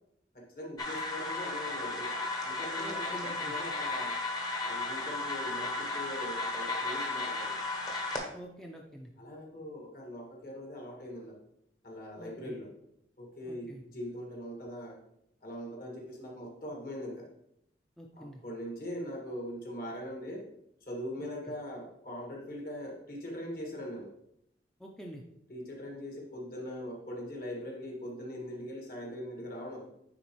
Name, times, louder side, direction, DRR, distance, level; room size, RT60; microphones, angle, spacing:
voice 1, 0.3-4.2 4.6-7.6 9.2-11.4 11.8-12.7 13.2-15.0 15.4-17.3 18.1-20.5 20.8-24.1 25.5-29.9, equal, 55° left, 0 dB, 1.7 m, -41 dB
sound 1, 0.8-8.2, left 2 dB, 20° left, 0.9 m, -34 dB
voice 2, 2.8-3.5 8.3-9.1 12.2-12.5 13.4-13.8 18.0-18.4 21.2-21.3 24.8-25.2, equal, 5° left, 0 dB, 0.5 m, -46 dB
9.5 x 3.9 x 3.0 m, 0.76 s
head